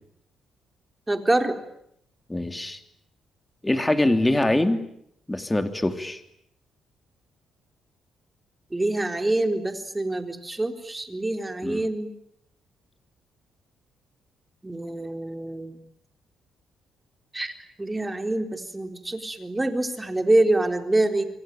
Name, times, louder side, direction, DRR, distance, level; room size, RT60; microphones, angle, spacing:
voice 1, 1.1-1.6 8.7-12.1 14.6-15.8 17.3-17.5 17.8-21.3, right 2 dB, 15° right, 6 dB, 3.9 m, -25 dB
voice 2, 2.3-2.8 3.6-4.8 5.3-6.2 11.6-11.9, left 1 dB, 10° left, 8 dB, 3.1 m, -23 dB
27.5 x 23.5 x 9.3 m, 0.74 s
cardioid pair, 90°, 0 cm